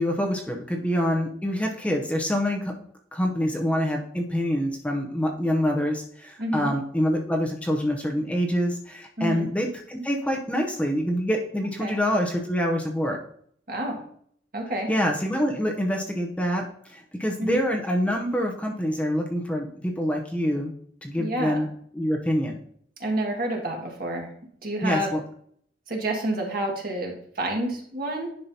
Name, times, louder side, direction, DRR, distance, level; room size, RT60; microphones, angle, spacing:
voice 1, 0.0-2.7 3.1-13.2 14.9-20.7 21.0-21.7 21.9-22.6 24.8-25.2, equal, 5° left, 1 dB, 0.7 m, -26 dB
voice 2, 6.4-6.7 9.2-9.5 11.8-12.0 13.7-14.0 14.5-14.9 17.4-17.6 21.2-21.6 23.0-24.3 24.6-25.1 25.9-28.3, right 1 dB, 55° right, 0 dB, 1.8 m, -28 dB
10.0 x 5.6 x 2.8 m, 0.63 s
head